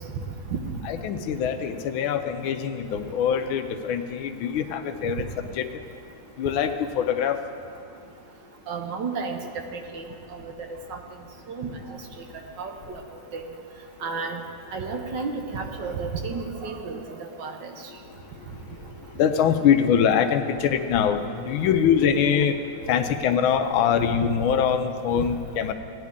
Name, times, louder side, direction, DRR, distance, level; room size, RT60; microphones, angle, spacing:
voice 1, 0.8-5.7 6.4-7.4 19.2-22.6 22.9-25.7, left 8 dB, 75° left, 8 dB, 1.4 m, -23 dB
voice 2, 8.7-9.4 9.9-10.1 10.3-10.5 10.9-11.0 11.5-11.7 12.6-13.0 13.3-13.4 14.0-14.4 14.7-17.7 22.8-22.9, right 4 dB, 65° right, 4 dB, 1.4 m, -32 dB
16.5 x 10.5 x 3.6 m, 2.4 s
omnidirectional pair, 2.3 m